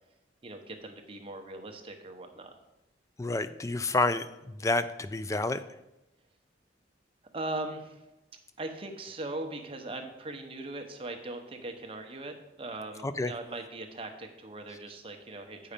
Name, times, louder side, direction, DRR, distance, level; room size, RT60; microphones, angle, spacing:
voice 1, 0.4-2.5 7.3-8.1 8.6-15.7, right 2 dB, 30° right, 4 dB, 0.9 m, -40 dB
voice 2, 3.2-5.6 13.0-13.3, left 2 dB, 15° left, 12 dB, 0.3 m, -29 dB
8.4 x 5.6 x 5.1 m, 0.94 s
head